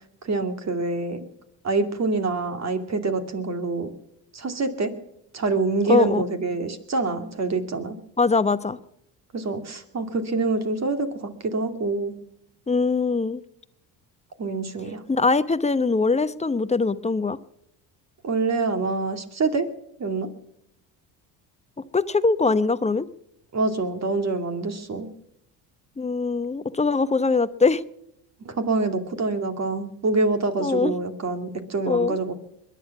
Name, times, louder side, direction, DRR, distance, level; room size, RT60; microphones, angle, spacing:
voice 1, 0.2-1.2 1.6-3.9 4.3-4.9 5.3-8.0 9.3-12.2 14.4-15.0 18.2-19.7 20.0-20.3 23.5-25.1 28.4-32.3, right 3 dB, 40° right, 2.6 m, -26 dB
voice 2, 5.9-6.2 8.2-8.8 12.7-13.4 15.1-17.4 21.9-23.1 26.0-27.8 30.6-30.9 31.9-32.2, left 4 dB, 15° left, 0.8 m, -22 dB
21.5 x 11.0 x 6.0 m
supercardioid pair, 90°, 42 cm